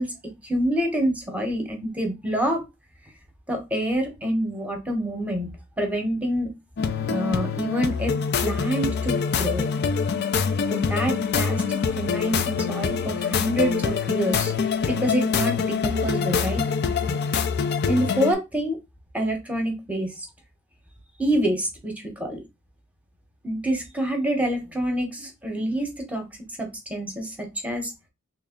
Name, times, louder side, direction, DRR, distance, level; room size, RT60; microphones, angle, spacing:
voice 1, 0.0-2.6 3.5-6.5 7.1-9.7 10.7-14.5 14.9-16.6 17.9-18.8 19.1-20.3 21.2-22.4 23.4-26.2 26.6-27.9, equal, 5° right, 2 dB, 0.9 m, -27 dB
sound 1, 6.8-18.3, left 6 dB, 55° left, 0.4 m, -25 dB
3.2 x 2.6 x 3.7 m, 0.23 s
head